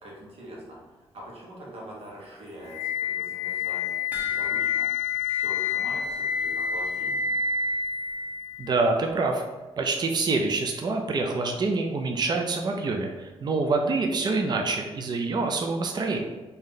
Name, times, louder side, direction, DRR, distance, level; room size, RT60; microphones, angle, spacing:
voice 1, 0.0-3.9 4.3-7.3, right 1 dB, 65° right, -4 dB, 1.3 m, -44 dB
Wind instrument woodwind instrument, 2.7-8.7, left 6 dB, 90° left, 0.4 m, -28 dB
sound 1, 4.1-6.7 6.9-7.0 7.5-7.6, equal, 15° right, 1.1 m, -42 dB
voice 2, 8.6-9.4 9.8-16.2, right 3 dB, 45° right, 3 dB, 0.5 m, -26 dB
3.1 x 2.8 x 3.8 m, 1.2 s
cardioid pair, 85°, 11 cm